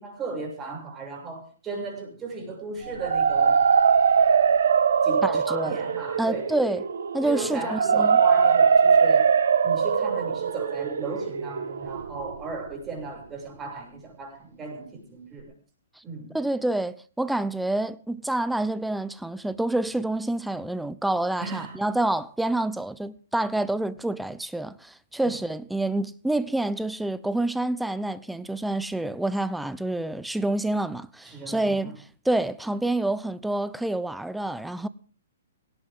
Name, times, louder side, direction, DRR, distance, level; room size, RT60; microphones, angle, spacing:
voice 1, 0.0-3.6 5.0-6.5 7.2-9.3 9.6-15.5 16.0-16.4 21.4-21.8 25.2-25.4 31.2-32.0, right 3 dB, 20° right, 7.3 m, -36 dB
sound 1, 2.8-12.7, right 6 dB, 75° right, 1.7 m, -21 dB
voice 2, 5.2-5.8 6.2-6.8 7.1-8.2 16.3-32.0 32.2-34.9, right 2 dB, 5° right, 0.9 m, -27 dB
18.0 x 18.0 x 3.9 m
hypercardioid pair, 130°, 0 cm